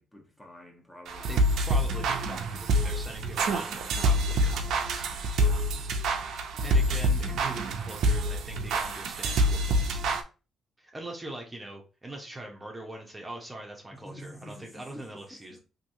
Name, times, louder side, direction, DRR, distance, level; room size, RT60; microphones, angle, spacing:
voice 1, 0.0-1.4 5.4-5.6 13.9-15.6, equal, 15° left, 0.9 m, -48 dB
sound 1, 1.1-10.2, right 1 dB, 75° right, 0.5 m, -27 dB
voice 2, 1.3-5.1 6.6-10.0 10.8-15.6, right 1 dB, 15° right, 0.7 m, -42 dB
2.9 x 2.7 x 2.6 m
cardioid pair, 90°, 0 cm